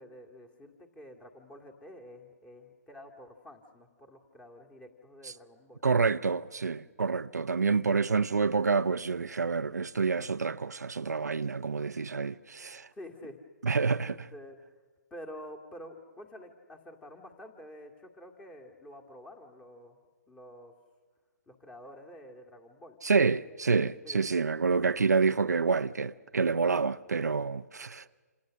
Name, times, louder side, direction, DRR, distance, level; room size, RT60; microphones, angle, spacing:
voice 1, 0.0-5.8 12.9-13.4 14.1-14.6 15.1-20.0 20.3-20.7 21.5-23.0 24.0-24.5, left 1 dB, 10° left, 2.1 m, -49 dB
voice 2, 5.8-12.9 13.6-14.2 23.0-28.0, right 4 dB, 85° right, 0.7 m, -28 dB
27.5 x 27.0 x 6.4 m
hypercardioid pair, 140°, 9 cm